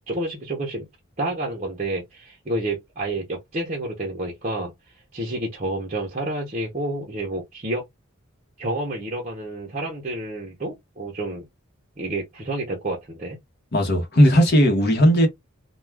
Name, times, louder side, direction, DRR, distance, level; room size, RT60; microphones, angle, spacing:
voice 1, 0.1-0.9 1.2-4.7 5.1-7.9 8.6-11.5 12.0-13.4, right 1 dB, 30° right, 0.6 m, -29 dB
voice 2, 13.7-15.3, equal, 50° left, 0.9 m, -16 dB
2.3 x 2.3 x 3.2 m
head